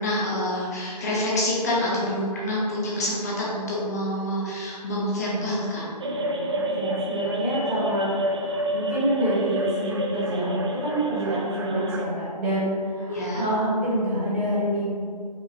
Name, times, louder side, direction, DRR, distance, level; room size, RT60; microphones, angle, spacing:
voice 1, 0.0-5.9 13.1-13.5, left 1 dB, 25° left, -6 dB, 0.7 m, -27 dB
sound 1, 6.0-12.0, right 1 dB, 40° right, 0.4 m, -29 dB
voice 2, 6.5-14.9, right 1 dB, 20° right, -9 dB, 1.1 m, -27 dB
4.8 x 2.4 x 3.2 m, 2.2 s
figure-of-eight pair, 155°, 21 cm